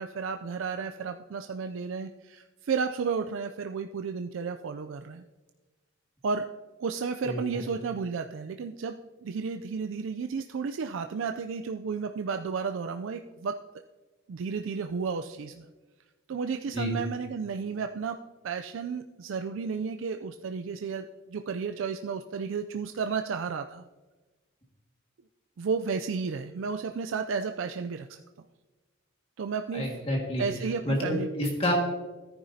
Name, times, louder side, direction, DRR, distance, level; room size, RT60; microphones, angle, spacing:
voice 1, 0.0-5.2 6.2-6.5 6.8-13.6 14.3-15.7 16.3-18.2 18.4-23.8 25.6-28.2 29.4-29.9 30.4-31.3, right 5 dB, 70° right, 6 dB, 0.4 m, -32 dB
voice 2, 29.7-30.4 30.8-31.7, left 1 dB, 25° left, 0 dB, 1.7 m, -29 dB
14.0 x 9.7 x 2.7 m, 1.2 s
head